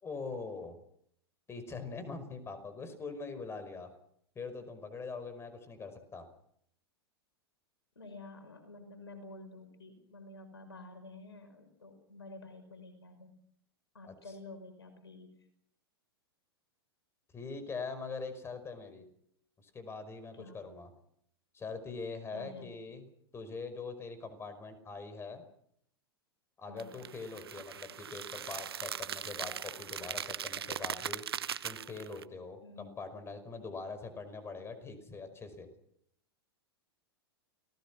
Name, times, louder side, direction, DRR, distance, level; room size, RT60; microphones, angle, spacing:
voice 1, 0.0-0.7 1.5-3.9 4.4-6.3 14.0-14.1 17.3-19.0 19.6-20.9 21.5-23.0 23.3-25.4 26.6-31.2 31.6-35.7, left 4 dB, 20° left, 11 dB, 5.4 m, -43 dB
voice 2, 8.0-13.4 13.9-15.3 20.3-20.6 22.3-22.7 26.7-26.9 32.6-32.9, left 2 dB, 75° left, 7 dB, 5.8 m, -50 dB
sound 1, 26.8-32.2, right 9 dB, 70° right, 1.0 m, -40 dB
30.0 x 19.0 x 6.3 m, 0.70 s
figure-of-eight pair, 95°, 13 cm